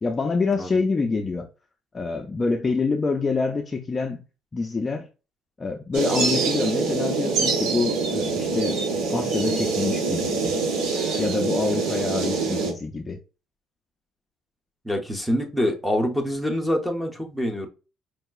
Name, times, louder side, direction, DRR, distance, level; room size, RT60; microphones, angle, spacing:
voice 1, 0.0-1.5 1.9-4.2 4.5-5.1 5.6-10.6 11.2-13.2, left 4 dB, 20° left, 0.4 m, -26 dB
sound 1, 5.9-12.7, right 4 dB, 90° right, 1.3 m, -25 dB
voice 2, 14.8-17.7, equal, 5° right, 0.8 m, -25 dB
5.2 x 2.9 x 2.3 m
cardioid pair, 170°, 0 cm